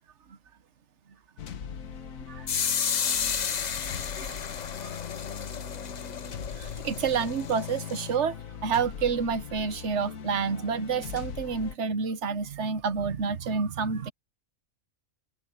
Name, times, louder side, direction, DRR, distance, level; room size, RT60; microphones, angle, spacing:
sound 1, 1.4-11.8, left 7 dB, 75° left, 1.5 m, -40 dB
sound 2, 2.5-8.1, left 7 dB, 45° left, 0.6 m, -32 dB
voice 1, 6.3-8.4 8.6-14.1, right 6 dB, 60° right, 1.3 m, -29 dB
omnidirectional pair, 1.4 m